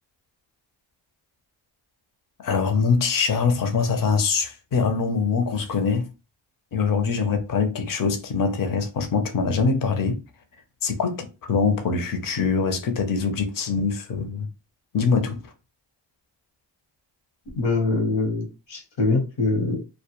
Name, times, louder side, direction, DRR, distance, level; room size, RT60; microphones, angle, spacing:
voice 1, 2.4-6.1 6.7-10.2 10.8-14.5 14.9-15.4, left 5 dB, 45° left, 0.7 m, -23 dB
voice 2, 17.6-19.8, left 3 dB, 75° left, 1.0 m, -23 dB
2.2 x 2.1 x 2.9 m
cardioid pair, 45°, 45 cm